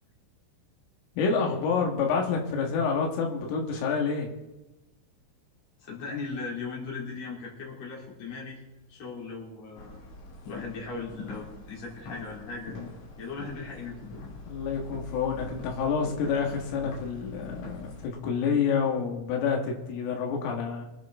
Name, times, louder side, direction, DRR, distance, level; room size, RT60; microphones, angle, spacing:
voice 1, 1.2-4.3 14.5-20.9, left 5 dB, 85° left, 1 dB, 4.3 m, -28 dB
voice 2, 5.8-8.6 8.9-10.0 10.5-12.8 13.2-14.2, left 4 dB, 35° left, -3 dB, 4.0 m, -38 dB
sound 1, 9.8-18.1, left 3 dB, 65° left, 4.8 m, -43 dB
24.0 x 9.4 x 3.7 m, 1.0 s
omnidirectional pair, 5.8 m